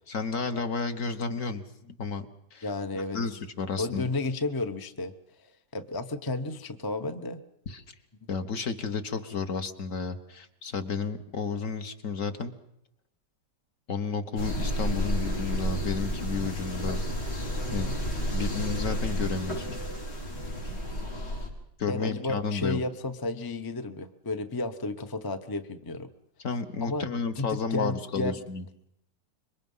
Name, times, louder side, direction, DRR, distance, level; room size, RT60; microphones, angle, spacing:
voice 1, 0.1-1.6 2.0-2.3 2.5-2.7 3.1-4.1 7.7-7.8 8.3-12.5 13.9-17.0 17.7-17.9 18.3-19.8 21.8-22.8 26.4-28.6, left 5 dB, 50° left, 8 dB, 1.4 m, -32 dB
voice 2, 2.6-3.2 3.8-5.1 5.7-7.4 21.9-26.1 26.8-28.4, left 2 dB, 20° left, 8 dB, 0.5 m, -32 dB
sound 1, 14.4-21.5, equal, 70° left, 4.8 m, -31 dB
26.0 x 23.0 x 5.5 m, 0.76 s
omnidirectional pair, 1.9 m